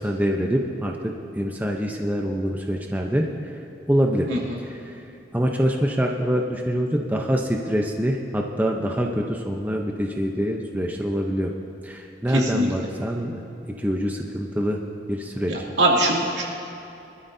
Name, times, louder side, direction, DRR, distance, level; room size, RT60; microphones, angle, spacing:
voice 1, 0.0-3.3 3.9-4.3 4.6-5.0 5.3-11.5 11.8-14.8 15.1-15.6, equal, 10° right, 1 dB, 0.7 m, -25 dB
voice 2, 15.5-16.4, right 1 dB, 80° right, -3 dB, 2.5 m, -22 dB
23.5 x 12.5 x 2.7 m, 2.8 s
head